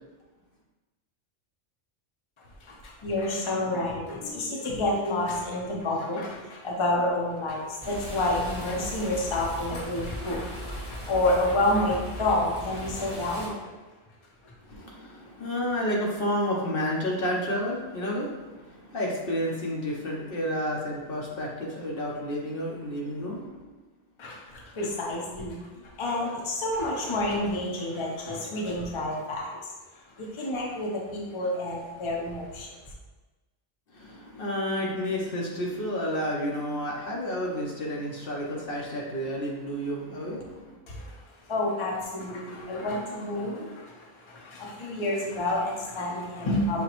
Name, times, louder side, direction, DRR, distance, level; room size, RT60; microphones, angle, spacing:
voice 1, 2.4-13.7 14.4-14.5 24.2-29.7 30.2-32.8 40.9-46.8, left 1 dB, 30° left, -2 dB, 0.7 m, -29 dB
sound 1, 7.8-13.5, left 1 dB, 10° left, 1.5 m, -38 dB
voice 2, 14.6-23.7 33.9-40.8, equal, 55° left, -3 dB, 0.9 m, -31 dB
5.9 x 2.9 x 3.0 m, 1.2 s
omnidirectional pair, 1.2 m